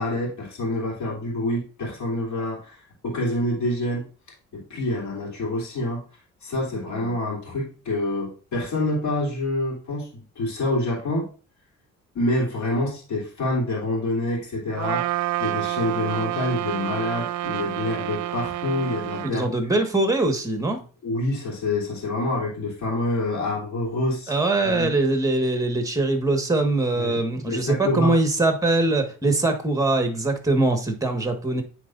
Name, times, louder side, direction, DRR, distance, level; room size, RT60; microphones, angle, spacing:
voice 1, 0.0-4.0 4.5-6.0 6.4-11.3 12.1-15.1 15.4-19.5 21.0-24.4 24.6-24.9 26.9-28.1, left 1 dB, 70° left, -3 dB, 3.3 m, -27 dB
Trumpet, 14.8-19.3, right 14 dB, 70° right, 0.5 m, -28 dB
voice 2, 19.3-20.8 24.3-31.6, right 2 dB, 10° right, 6 dB, 1.5 m, -22 dB
9.3 x 4.5 x 2.6 m, 0.36 s
cardioid pair, 90°, 30 cm